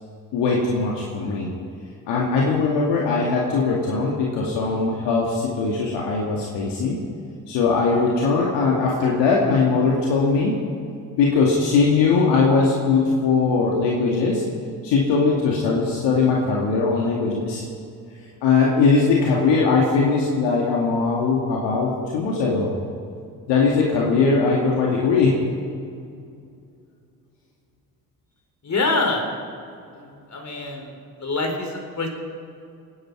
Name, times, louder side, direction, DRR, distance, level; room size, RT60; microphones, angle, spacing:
voice 1, 0.3-1.5 2.1-7.0 7.5-10.6 11.2-14.4 14.8-17.6 18.4-22.7 23.5-25.4, left 4 dB, 70° left, -2 dB, 2.4 m, -20 dB
voice 2, 28.6-29.2 29.9-30.9 31.2-32.1, left 3 dB, 40° left, 3 dB, 4.2 m, -25 dB
26.0 x 10.5 x 4.8 m, 2.4 s
hypercardioid pair, 50°, 44 cm